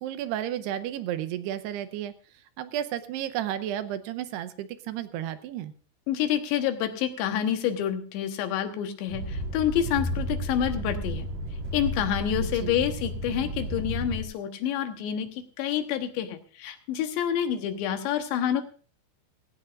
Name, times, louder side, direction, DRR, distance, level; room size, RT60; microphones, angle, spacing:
voice 1, 0.0-5.7 12.4-12.7, right 11 dB, 80° right, 11 dB, 2.8 m, -33 dB
voice 2, 6.1-11.3 11.7-18.6, left 10 dB, 85° left, 6 dB, 3.5 m, -28 dB
sound 1, 9.1-14.2, right 1 dB, 55° right, 3.1 m, -32 dB
18.0 x 17.0 x 2.5 m, 0.40 s
omnidirectional pair, 5.0 m